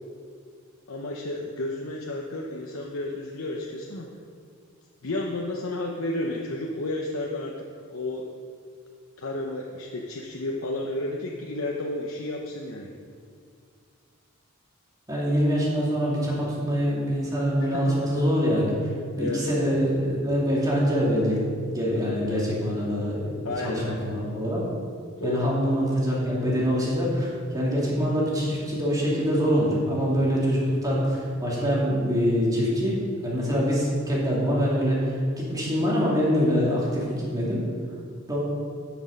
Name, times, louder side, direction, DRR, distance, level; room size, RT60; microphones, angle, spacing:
voice 1, 0.9-4.1 5.0-7.5 7.9-8.3 9.2-12.9 17.7-17.9 19.1-19.4 22.1-22.3 23.4-24.1 25.2-25.5, left 2 dB, 85° left, -1 dB, 0.9 m, -32 dB
voice 2, 15.1-18.7 19.1-24.6 25.2-37.6 38.3-38.4, equal, 20° right, -6 dB, 2.5 m, -24 dB
11.5 x 6.3 x 5.2 m, 2.1 s
head